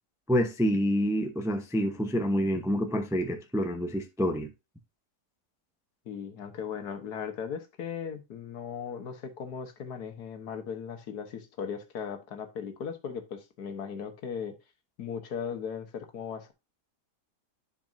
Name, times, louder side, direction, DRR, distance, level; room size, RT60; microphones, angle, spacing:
voice 1, 0.3-4.5, equal, 5° right, 0.5 m, -27 dB
voice 2, 6.0-14.5 15.0-16.5, left 7 dB, 70° left, 1.7 m, -37 dB
10.5 x 5.2 x 2.6 m
omnidirectional pair, 1.8 m